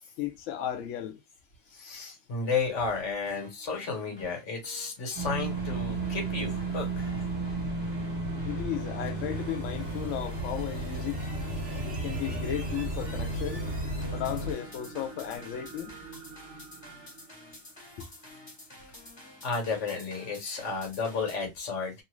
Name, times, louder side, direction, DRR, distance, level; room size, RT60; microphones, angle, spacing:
voice 1, 0.2-1.2 8.4-11.2 11.8-13.7 14.1-15.9, left 11 dB, 85° left, 0.6 m, -35 dB
voice 2, 1.7-7.1 19.4-22.0, left 4 dB, 45° left, 1.3 m, -32 dB
sound 1, 2.4-21.4, left 1 dB, 15° left, 1.2 m, -51 dB
sound 2, 5.2-14.5, right 2 dB, 35° right, 1.4 m, -33 dB
sound 3, 8.4-18.7 19.3-19.4, right 4 dB, 75° right, 0.6 m, -47 dB
2.9 x 2.5 x 3.0 m
omnidirectional pair, 1.9 m